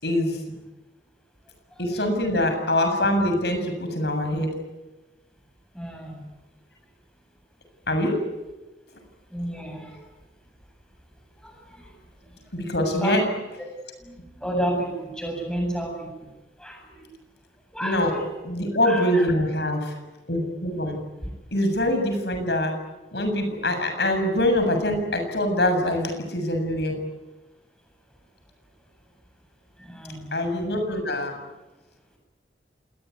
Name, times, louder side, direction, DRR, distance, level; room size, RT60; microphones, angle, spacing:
voice 1, 0.0-0.6 1.8-4.5 7.9-8.2 12.5-13.2 17.8-18.1 18.4-20.0 20.3-21.0 21.5-22.7 23.1-27.0 30.3-31.4, left 1 dB, 70° left, 6 dB, 7.3 m, -24 dB
voice 2, 5.7-6.2 9.3-10.0 11.4-11.9 13.0-13.3 14.0-16.3 16.6-17.0 17.7-18.2 18.8-19.3 29.8-30.3, right 1 dB, 5° left, 2 dB, 8.0 m, -31 dB
27.0 x 20.5 x 9.5 m, 1.1 s
head